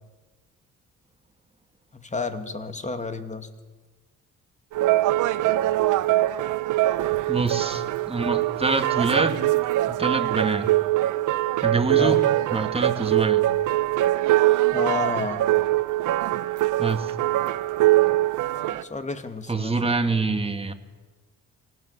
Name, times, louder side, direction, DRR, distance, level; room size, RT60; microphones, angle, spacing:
voice 1, 1.9-3.5 11.9-12.2 14.7-15.5 18.6-19.9, left 3 dB, 25° left, 9 dB, 2.3 m, -30 dB
sound 1, 4.7-18.8, right 15 dB, 80° right, 0.9 m, -23 dB
voice 2, 7.3-9.5 9.9-10.7 11.6-12.2 12.5-13.4 16.8-17.2 19.5-20.7, right 3 dB, 20° right, 7 dB, 2.1 m, -25 dB
25.5 x 18.0 x 8.3 m, 1.3 s
cardioid pair, 90°, 30 cm